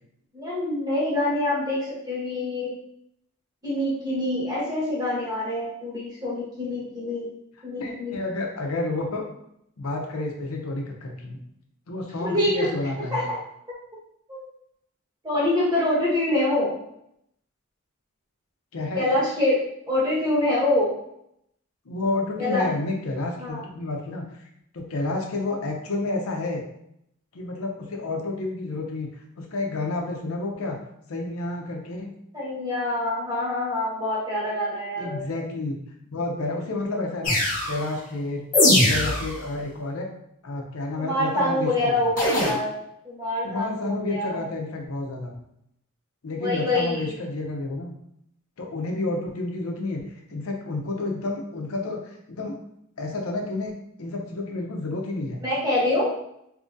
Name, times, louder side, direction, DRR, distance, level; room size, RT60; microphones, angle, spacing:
voice 1, 0.3-2.7 3.6-7.3 7.6-8.2 12.2-12.7 13.1-13.4 14.3-14.5 15.2-16.8 18.9-19.6 19.9-20.9 22.4-22.6 23.4-23.6 32.3-35.3 41.0-42.7 43.0-44.4 46.4-47.1 55.4-56.1, left 1 dB, 20° right, -7 dB, 1.2 m, -25 dB
voice 2, 7.8-9.3 9.8-11.4 11.9-13.2 18.7-19.1 21.9-24.5 24.7-26.6 27.3-29.1 29.4-30.8 31.1-32.1 35.0-35.8 36.1-37.4 37.7-38.4 38.7-40.1 40.4-42.1 43.4-45.4 46.2-47.9 48.6-50.0 50.3-52.6 53.0-55.4, left 2 dB, 90° left, 1 dB, 0.7 m, -30 dB
sound 1, 37.2-37.8 38.5-39.4 42.2-42.5, left 1 dB, 40° left, 1.1 m, -20 dB
3.8 x 2.7 x 2.5 m, 0.76 s
head